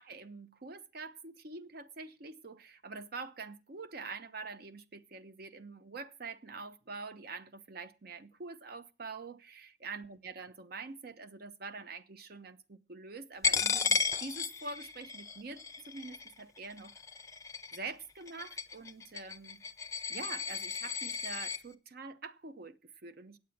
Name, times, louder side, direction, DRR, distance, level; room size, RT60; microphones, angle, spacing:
voice 1, 0.0-16.9 17.7-19.6 20.1-23.4, right 4 dB, 50° right, 0.7 m, -45 dB
Coin (dropping), 13.4-21.6, left 5 dB, 15° left, 0.5 m, -34 dB
8.6 x 8.2 x 7.2 m
head